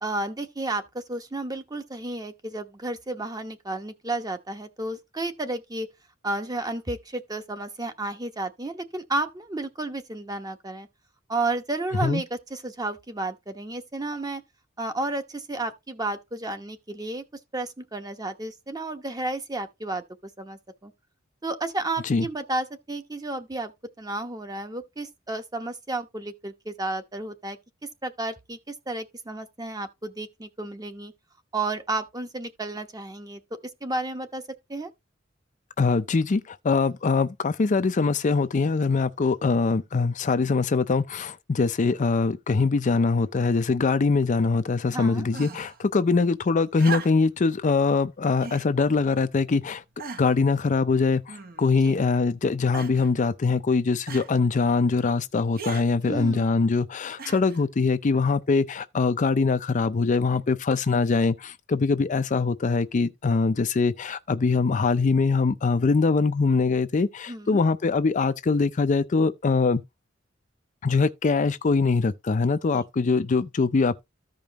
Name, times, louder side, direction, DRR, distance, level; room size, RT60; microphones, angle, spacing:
voice 1, 0.0-5.9 6.2-10.9 11.3-14.4 14.8-17.2 17.5-20.0 20.4-20.9 21.4-23.7 24.0-31.1 31.5-33.4 33.8-34.4 34.7-34.9 44.9-45.3 51.8-51.9 56.0-56.5 67.3-67.6 72.7-72.8, right 2 dB, 20° right, 1.0 m, -32 dB
voice 2, 35.8-49.8 50.2-69.8 70.8-74.0, left 4 dB, 40° left, 0.5 m, -23 dB
sound 1, 45.3-45.8 46.8-47.4 48.4-48.7 49.4-49.5 50.0-50.4 51.3-51.8 52.7-53.1 54.1-54.3 55.6-55.9 57.2-57.6 58.7-58.8, right 5 dB, 50° right, 1.0 m, -37 dB
14.0 x 5.1 x 2.9 m
head